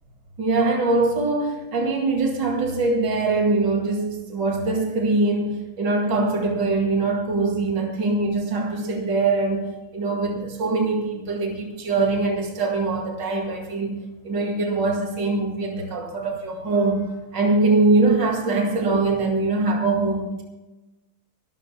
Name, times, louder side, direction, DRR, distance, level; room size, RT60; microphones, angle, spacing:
voice 1, 0.4-14.0 14.2-20.4, right 3 dB, 55° right, 1 dB, 2.8 m, -23 dB
23.5 x 13.5 x 2.2 m, 1.1 s
omnidirectional pair, 2.3 m